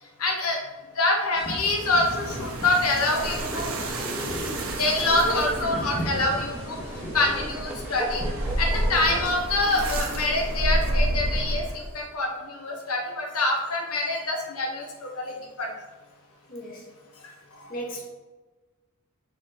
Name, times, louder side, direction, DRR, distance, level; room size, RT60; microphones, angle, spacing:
voice 1, 0.2-0.6 1.0-3.7 4.7-6.8 7.1-8.2 8.6-14.8 15.2-15.3 15.6-15.7, left 2 dB, 85° left, 1 dB, 1.1 m, -25 dB
sound 1, 1.4-9.3, equal, 70° left, 1.7 m, -39 dB
sound 2, 1.6-12.0, right 1 dB, 75° right, 1.1 m, -30 dB
sound 3, 3.2-9.5, equal, 5° right, 0.7 m, -37 dB
voice 2, 16.5-16.8 17.7-18.0, right 1 dB, 40° left, -1 dB, 1.1 m, -35 dB
7.0 x 3.9 x 4.0 m, 1.2 s
head